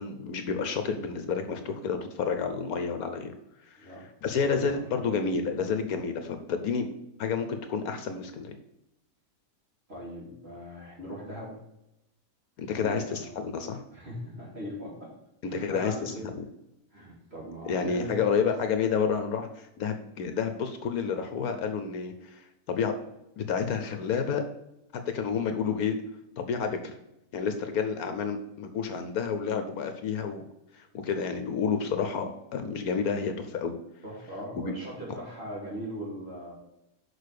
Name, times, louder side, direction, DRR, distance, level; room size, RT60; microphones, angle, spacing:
voice 1, 0.0-3.3 3.7-3.9 4.2-6.9 7.2-8.5 12.6-13.8 15.5-16.4 17.7-22.9 23.4-24.4 24.9-26.0 26.4-27.0 27.3-30.4 30.7-33.7 34.5-34.7 35.1-35.2, left 6 dB, 70° left, 8 dB, 1.2 m, -30 dB
voice 2, 3.8-5.0 9.9-11.6 12.7-13.4 13.9-15.1 15.4-16.2 16.9-18.4 34.0-36.5, equal, 40° right, -5 dB, 3.2 m, -40 dB
6.6 x 4.8 x 6.6 m, 0.89 s
omnidirectional pair, 1.7 m